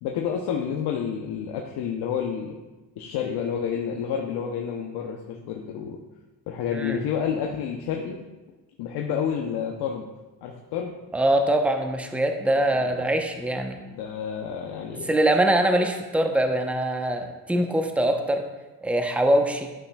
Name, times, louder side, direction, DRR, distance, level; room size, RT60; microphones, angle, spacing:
voice 1, 0.0-2.6 3.0-6.0 6.5-8.2 8.8-10.1 10.4-10.9 12.8-13.2 13.9-15.1, left 7 dB, 80° left, 1 dB, 0.8 m, -29 dB
voice 2, 11.1-13.8 15.0-18.4 18.8-19.7, right 1 dB, 5° right, 5 dB, 0.7 m, -23 dB
11.0 x 5.7 x 2.3 m, 1.2 s
cardioid pair, 80°, 39 cm